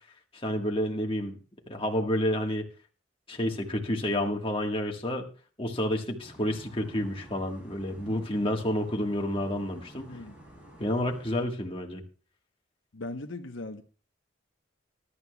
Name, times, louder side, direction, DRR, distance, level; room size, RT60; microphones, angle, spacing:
voice 1, 0.3-1.4 1.7-2.7 3.3-5.3 5.6-10.2 10.8-12.0, left 1 dB, 25° left, 1.6 m, -29 dB
sound 1, 6.2-11.5, right 1 dB, 10° right, 6.1 m, -51 dB
voice 2, 12.9-13.8, left 2 dB, 75° left, 1.0 m, -39 dB
21.0 x 11.5 x 2.3 m
head